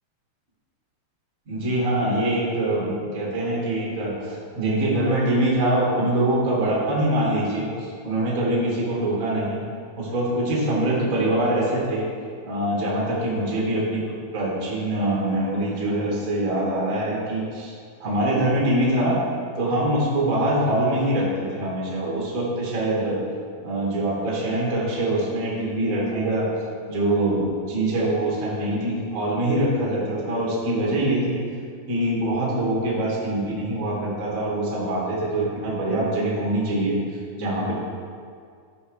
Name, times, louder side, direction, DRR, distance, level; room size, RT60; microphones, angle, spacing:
voice 1, 1.5-9.6 10.0-12.1 12.4-14.0 14.3-17.7 18.0-19.2 19.6-23.2 23.6-26.5 26.9-27.4 27.7-31.4 31.9-37.0 37.4-37.7, right 1 dB, 40° right, -5 dB, 1.2 m, -24 dB
12.5 x 5.2 x 3.2 m, 2.2 s
omnidirectional pair, 4.3 m